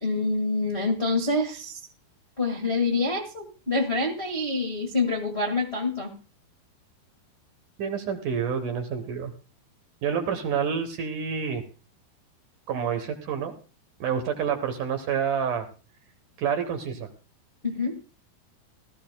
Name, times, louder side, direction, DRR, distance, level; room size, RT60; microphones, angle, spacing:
voice 1, 0.0-1.8 2.4-6.1 17.6-18.0, left 3 dB, 50° left, 4 dB, 0.7 m, -26 dB
voice 2, 7.8-9.3 10.0-11.6 12.7-13.5 14.0-15.7 16.4-17.1, right 7 dB, 65° right, 6 dB, 2.2 m, -28 dB
17.5 x 14.0 x 2.2 m, 0.35 s
omnidirectional pair, 4.6 m